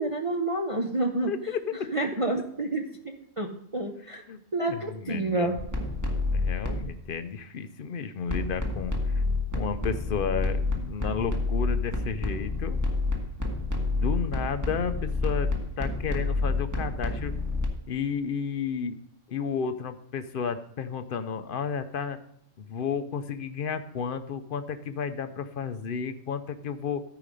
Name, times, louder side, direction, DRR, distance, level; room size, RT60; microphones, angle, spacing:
voice 1, 0.0-1.3 1.9-3.5 3.7-4.2 4.5-5.5, right 2 dB, 30° right, 2 dB, 0.6 m, -28 dB
voice 2, 1.3-2.0 4.3-4.4 4.7-5.5 6.3-9.2 9.5-12.8 13.8-15.5 15.8-17.3 17.9-19.0 19.3-22.2 22.6-27.0, left 6 dB, 55° left, 10 dB, 0.6 m, -32 dB
sound 1, 5.6-7.0 8.3-17.7, left 3 dB, 15° right, 1.3 m, -29 dB
13.0 x 4.9 x 5.2 m, 0.69 s
omnidirectional pair, 1.5 m